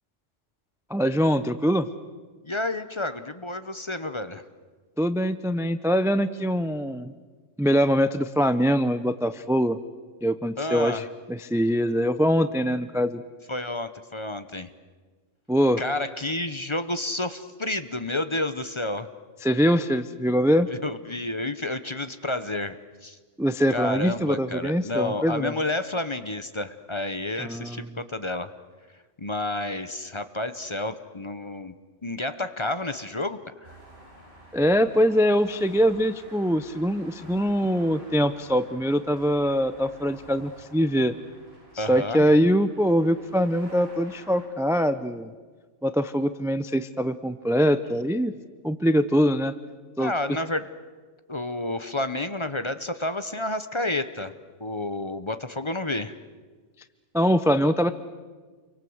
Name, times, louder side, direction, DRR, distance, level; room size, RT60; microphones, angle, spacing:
voice 1, 0.9-1.9 5.0-7.1 7.6-9.8 10.2-13.2 15.5-15.8 19.4-20.7 23.4-25.5 27.4-28.0 34.5-41.1 41.7-45.3 45.8-48.3 48.6-49.5 50.0-50.1 57.1-57.9, equal, 5° right, 12 dB, 0.5 m, -23 dB
voice 2, 2.4-4.4 10.6-11.0 13.5-14.7 15.8-19.1 20.8-23.2 23.7-28.5 29.2-31.7 32.0-33.8 41.8-42.3 50.0-50.7 51.3-54.3 54.6-56.1, left 2 dB, 25° left, 11 dB, 0.9 m, -30 dB
sound 1, 33.6-44.5, equal, 55° right, 5.1 m, -50 dB
29.0 x 23.5 x 7.9 m, 1.5 s
omnidirectional pair, 1.3 m